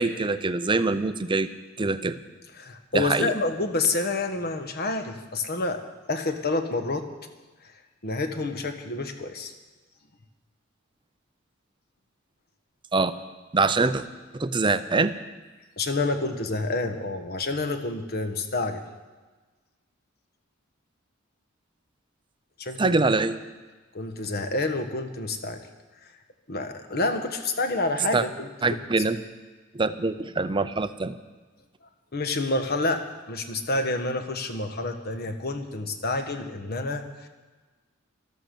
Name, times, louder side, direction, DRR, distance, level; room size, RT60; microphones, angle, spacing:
voice 1, 0.0-1.5 1.8-2.2 2.9-3.3 12.9-13.1 13.5-14.0 14.3-15.1 22.8-23.3 28.1-28.2 28.6-29.2 29.7-31.2, right 3 dB, 25° right, 12 dB, 0.6 m, -24 dB
voice 2, 2.6-5.8 6.1-7.0 8.0-9.5 15.8-18.8 22.6-23.0 23.9-25.6 26.0-26.1 26.5-28.8 32.1-37.3, left 2 dB, 50° left, 7 dB, 1.3 m, -28 dB
13.0 x 12.0 x 6.8 m, 1.3 s
head